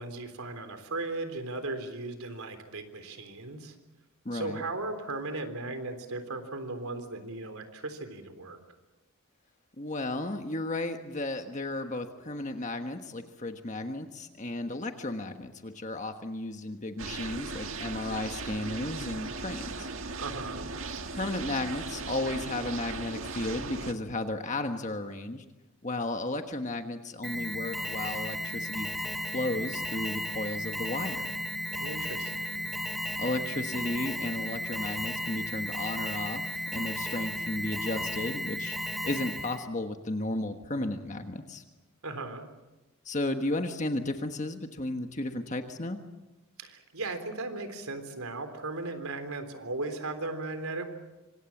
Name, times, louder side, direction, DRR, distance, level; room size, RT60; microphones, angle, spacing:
voice 1, 0.0-3.8 4.3-8.6 20.2-20.7 31.7-32.7 42.0-42.5 46.6-50.9, right 2 dB, 80° right, 8 dB, 3.6 m, -37 dB
voice 2, 4.2-4.6 9.8-19.9 21.1-25.4 25.8-31.3 33.2-38.8 39.0-41.6 43.0-46.0, left 2 dB, 35° left, 6 dB, 1.4 m, -34 dB
sound 1, 17.0-23.9, right 3 dB, 65° right, 1.9 m, -38 dB
Alarm, 27.2-39.6, equal, ahead, 2.5 m, -34 dB
26.5 x 26.0 x 7.3 m, 1.1 s
head